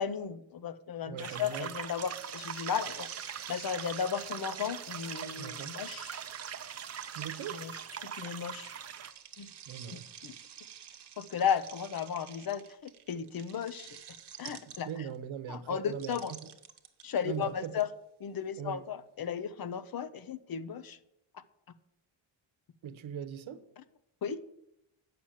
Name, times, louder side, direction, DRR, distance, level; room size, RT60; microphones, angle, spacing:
voice 1, 0.0-6.2 7.5-7.7 8.0-8.7 9.4-9.5 9.9-10.3 11.2-13.9 14.4-14.9 15.5-16.3 17.0-17.9 18.2-21.0 24.2-24.4, left 7 dB, 50° left, 12 dB, 0.6 m, -35 dB
voice 2, 1.1-1.7 5.4-5.8 7.1-7.6 9.7-10.1 14.5-16.5 17.2-17.8 18.6-18.8 22.8-23.6, right 9 dB, 85° right, 11 dB, 0.9 m, -41 dB
sound 1, 1.2-9.1, right 8 dB, 35° right, 0.5 m, -42 dB
sound 2, 1.5-15.2 15.9-17.8, right 9 dB, 60° right, 1.0 m, -48 dB
9.0 x 5.9 x 7.2 m, 0.85 s
wide cardioid pair, 165°, 46 cm